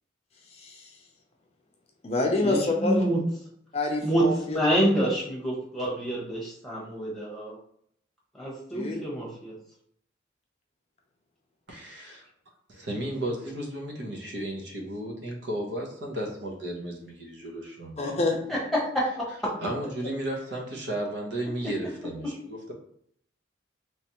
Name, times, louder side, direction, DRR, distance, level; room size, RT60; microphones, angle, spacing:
voice 1, 0.6-0.9 2.0-3.0 3.7-4.6 8.7-9.0 18.0-18.4, left 2 dB, 35° left, 1 dB, 0.5 m, -27 dB
voice 2, 2.4-3.2 4.0-7.6 8.4-9.5 18.5-18.8, right 1 dB, ahead, -6 dB, 1.1 m, -27 dB
voice 3, 11.7-12.3 12.7-17.9 19.6-22.7, right 1 dB, 70° right, 0 dB, 0.9 m, -34 dB
3.3 x 3.1 x 2.9 m, 0.67 s
head